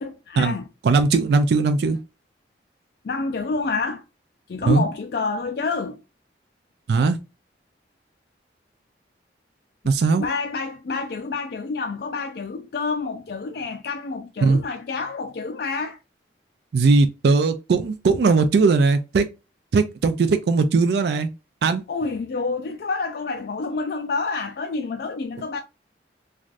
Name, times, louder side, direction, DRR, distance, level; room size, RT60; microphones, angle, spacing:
voice 1, 0.0-0.7 3.0-4.0 4.5-6.0 10.2-16.0 21.9-25.6, left 4 dB, 55° left, 0.3 m, -28 dB
voice 2, 0.8-2.0 4.7-4.8 6.9-7.2 9.9-10.2 14.4-14.6 16.7-19.3 19.7-21.3 21.6-21.8, right 4 dB, 65° right, 0.3 m, -19 dB
3.2 x 2.5 x 2.4 m
head